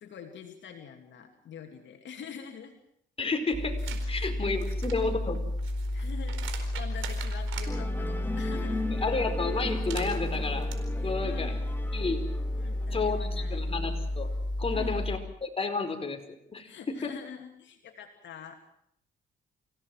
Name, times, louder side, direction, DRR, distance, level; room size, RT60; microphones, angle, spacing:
voice 1, 0.0-2.7 3.9-4.7 5.9-8.9 11.0-11.6 12.6-13.6 14.7-15.0 16.6-18.6, left 7 dB, 65° left, 4 dB, 2.9 m, -45 dB
voice 2, 3.2-3.8 4.1-5.4 9.0-10.7 11.0-11.6 11.9-12.2 12.9-14.3 14.6-16.2 16.5-17.1, left 3 dB, 30° left, 5 dB, 4.8 m, -31 dB
sound 1, 3.5-15.2, left 1 dB, 20° right, 4.2 m, -32 dB
sound 2, 3.8-4.1 4.5-7.7 9.6-10.7, right 9 dB, 85° right, 4.5 m, -43 dB
Musical instrument, 7.7-14.3, left 1 dB, 10° left, 3.3 m, -39 dB
28.5 x 17.0 x 7.7 m, 0.70 s
cardioid pair, 90°, 20 cm